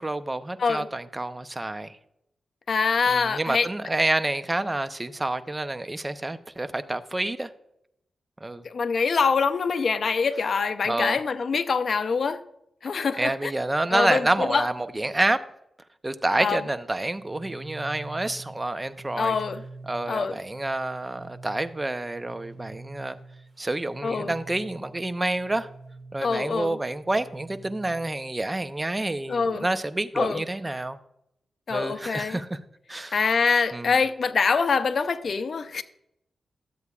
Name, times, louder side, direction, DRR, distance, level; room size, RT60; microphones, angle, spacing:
voice 1, 0.0-2.0 3.1-7.5 8.4-8.6 10.8-11.2 13.2-15.4 16.0-19.4 19.9-23.2 23.6-25.7 26.1-31.0 31.7-32.6 32.9-33.2 33.7-34.0, right 2 dB, 20° right, 0.6 m, -28 dB
voice 2, 2.7-3.7 8.6-12.4 12.8-13.5 13.9-14.7 16.4-16.6 19.2-19.6 20.1-20.4 24.0-24.3 26.2-26.8 29.3-29.7 30.1-30.4 31.7-32.4 33.1-35.8, left 5 dB, 60° left, 0.6 m, -24 dB
sound 1, 17.1-28.1, right 3 dB, 50° right, 1.8 m, -45 dB
12.5 x 8.0 x 2.4 m
cardioid pair, 75°, 0 cm